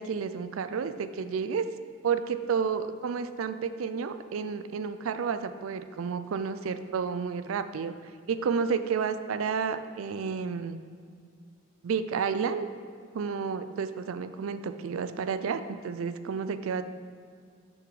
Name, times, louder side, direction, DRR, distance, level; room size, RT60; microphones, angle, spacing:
voice 1, 0.0-1.7 2.0-7.9 8.3-10.8 11.8-12.7 13.1-16.8, right 6 dB, 85° right, 11 dB, 0.4 m, -31 dB
6.3 x 6.0 x 4.7 m, 2.1 s
head